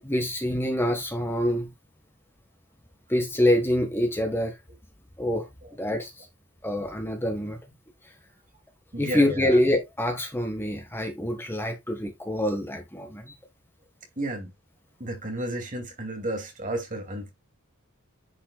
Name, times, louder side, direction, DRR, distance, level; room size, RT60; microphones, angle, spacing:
voice 1, 0.0-1.7 3.1-4.6 5.2-5.5 5.7-6.2 6.6-7.6 9.0-13.3, left 1 dB, 10° left, 1.5 m, -26 dB
voice 2, 8.9-9.6 14.2-14.5 15.0-17.3, right 1 dB, 35° right, 2.5 m, -32 dB
10.5 x 5.7 x 2.3 m
head